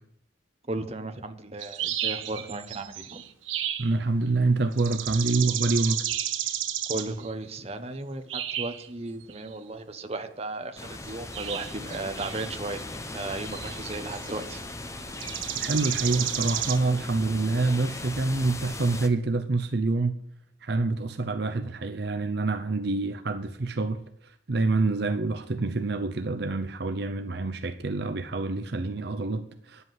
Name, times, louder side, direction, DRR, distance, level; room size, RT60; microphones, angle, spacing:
voice 1, 0.7-3.2 6.9-14.6, right 2 dB, 30° right, 1.0 m, -35 dB
sound 1, 1.6-3.9 4.7-7.3 8.3-8.9 9.3-9.5 11.1-12.5 13.2-14.6 15.1-16.8, right 11 dB, 90° right, 1.0 m, -32 dB
voice 2, 3.8-6.0 15.6-20.2 20.6-29.8, right 3 dB, 55° right, 0.6 m, -27 dB
sound 2, 10.8-19.1, left 2 dB, 15° left, 0.8 m, -38 dB
9.8 x 8.0 x 7.5 m
head